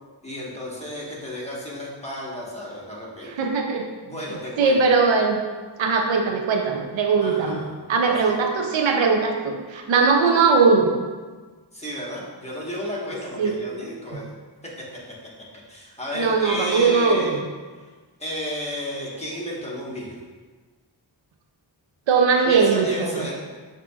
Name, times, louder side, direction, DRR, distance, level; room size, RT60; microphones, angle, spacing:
voice 1, 0.2-3.3 4.0-4.8 7.2-7.7 8.0-8.3 11.7-14.4 14.6-15.2 15.7-17.4 18.2-20.2 22.4-23.3, equal, 15° left, -6 dB, 1.2 m, -32 dB
voice 2, 3.4-3.9 4.6-5.4 5.8-7.6 7.9-10.9 13.4-13.5 16.1-17.4 22.1-23.3, right 4 dB, 85° right, 2 dB, 0.6 m, -20 dB
7.2 x 2.8 x 2.3 m, 1.4 s
wide cardioid pair, 60°, 45 cm